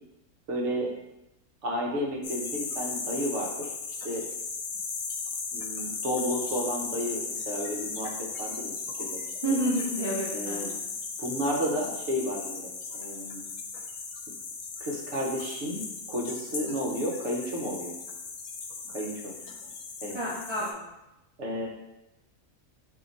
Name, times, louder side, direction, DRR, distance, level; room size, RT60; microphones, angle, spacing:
voice 1, 0.5-0.9 1.6-3.7 4.0-4.2 5.5-9.2 9.5-9.6 10.3-10.8 11.2-13.5 14.8-17.9 18.9-19.3 20.0-20.2 21.4-21.7, equal, 60° right, -1 dB, 1.1 m, -32 dB
sound 1, 2.2-20.7, left 4 dB, 80° left, 1.0 m, -36 dB
voice 2, 9.4-10.8 20.1-20.8, right 1 dB, 25° right, -7 dB, 0.6 m, -30 dB
3.7 x 2.8 x 3.9 m, 0.91 s
omnidirectional pair, 1.5 m